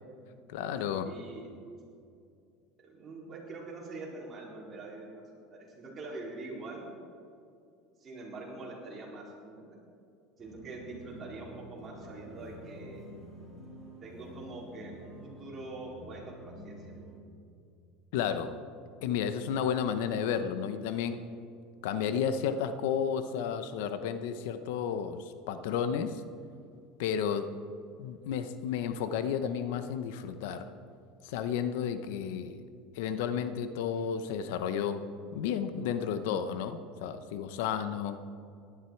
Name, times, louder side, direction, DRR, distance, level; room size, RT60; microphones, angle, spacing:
voice 1, 0.5-1.1 18.1-18.6 19.0-21.2 21.8-26.2 27.0-27.5 28.0-30.7 31.2-32.6 32.9-35.1 35.3-38.2, left 8 dB, 80° left, 10 dB, 0.8 m, -32 dB
voice 2, 1.0-1.5 2.9-5.2 5.5-6.9 8.0-9.7 10.4-13.0 14.0-17.0, right 2 dB, 25° right, -4 dB, 4.2 m, -44 dB
sound 1, 10.4-17.2, equal, 10° left, 3.7 m, -49 dB
17.5 x 12.0 x 4.6 m, 2.4 s
supercardioid pair, 135°, 0 cm